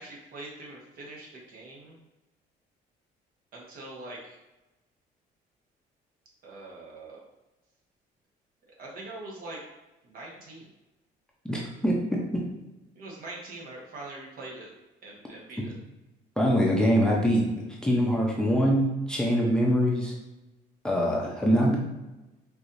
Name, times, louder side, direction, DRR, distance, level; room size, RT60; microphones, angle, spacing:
voice 1, 0.0-2.0 3.5-4.4 6.4-7.2 8.8-9.6 10.0-10.7 12.9-14.7 15.0-15.7, right 2 dB, 60° right, -3 dB, 1.2 m, -43 dB
voice 2, 11.4-12.0 16.4-17.5 17.8-20.1 20.8-21.8, equal, 5° left, -3 dB, 0.6 m, -23 dB
4.7 x 2.7 x 2.6 m, 1.0 s
cardioid pair, 110°, 17 cm